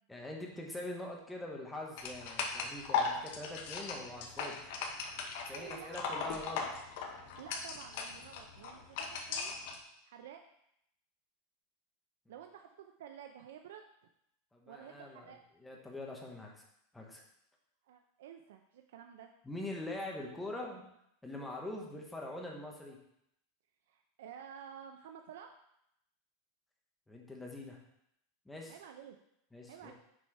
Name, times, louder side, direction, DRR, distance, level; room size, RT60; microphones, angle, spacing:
voice 1, 0.1-4.6 5.5-6.7 14.5-15.3 15.6-16.6 16.9-17.2 19.4-20.9 21.2-23.0 27.1-27.8 28.4-28.8 29.5-29.9, left 1 dB, 5° left, -1 dB, 1.0 m, -43 dB
sound 1, 2.0-9.8, left 5 dB, 55° left, 0.9 m, -38 dB
voice 2, 5.5-6.4 7.4-9.5 10.0-10.4 12.3-13.8 14.7-15.4 17.8-19.3 23.9-25.5 28.7-29.2 29.7-29.9, right 8 dB, 85° right, 5 dB, 0.5 m, -51 dB
6.1 x 4.2 x 4.6 m, 0.77 s
supercardioid pair, 165°, 0 cm